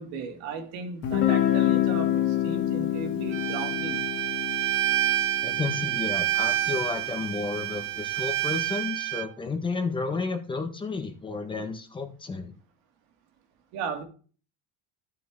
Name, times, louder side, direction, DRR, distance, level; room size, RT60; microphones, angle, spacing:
voice 1, 0.0-4.0 13.7-14.0, right 5 dB, 65° right, 2.7 m, -36 dB
Guitar, 1.0-6.8, left 12 dB, 50° left, 2.4 m, -27 dB
Bowed string instrument, 3.3-9.3, right 13 dB, 45° right, 1.0 m, -28 dB
voice 2, 5.4-12.5, left 4 dB, 15° left, 1.5 m, -32 dB
12.5 x 7.5 x 3.8 m
supercardioid pair, 135°, 29 cm